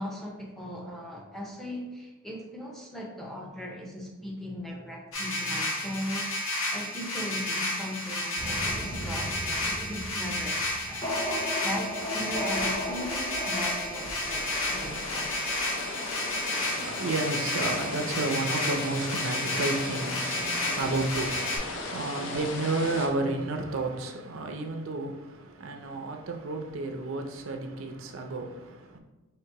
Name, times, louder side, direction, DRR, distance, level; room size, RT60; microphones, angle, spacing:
voice 1, 0.0-15.5, equal, ahead, -2 dB, 0.5 m, -38 dB
sound 1, 5.1-21.6, left 2 dB, 75° left, 1.2 m, -32 dB
sound 2, 8.4-16.0, left 1 dB, 25° left, 0.9 m, -36 dB
sound 3, 14.2-23.1, left 3 dB, 60° left, 0.5 m, -37 dB
voice 2, 16.5-29.0, right 2 dB, 75° right, 4 dB, 0.5 m, -32 dB
3.2 x 2.9 x 4.5 m, 1.1 s
head